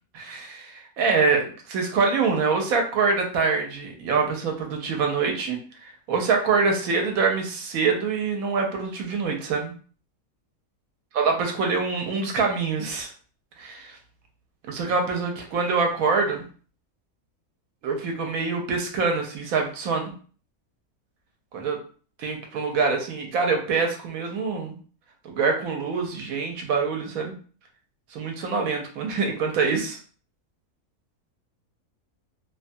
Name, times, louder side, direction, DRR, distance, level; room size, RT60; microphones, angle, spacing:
voice 1, 0.1-9.7 11.1-13.1 13.6-14.0 14.7-16.4 17.8-20.1 21.5-21.8 22.2-24.7 25.2-27.3 28.1-30.0, right 4 dB, 70° right, 3 dB, 1.0 m, -25 dB
2.5 x 2.2 x 2.6 m, 0.41 s
omnidirectional pair, 1.7 m